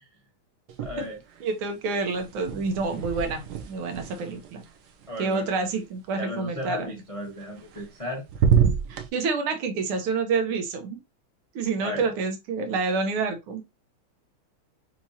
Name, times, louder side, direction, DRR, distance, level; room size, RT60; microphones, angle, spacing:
sound 1, 0.7-1.4 1.7-5.8 7.4-8.0 8.3-9.1, right 7 dB, 65° right, 1.1 m, -27 dB
voice 1, 0.8-1.2 5.1-5.6 6.1-8.2 11.8-12.1, left 1 dB, 50° left, 0.4 m, -35 dB
voice 2, 1.4-4.6 5.2-6.9 8.9-11.0 11.6-13.6, right 4 dB, 85° right, 1.8 m, -28 dB
5.9 x 2.9 x 2.7 m
omnidirectional pair, 2.3 m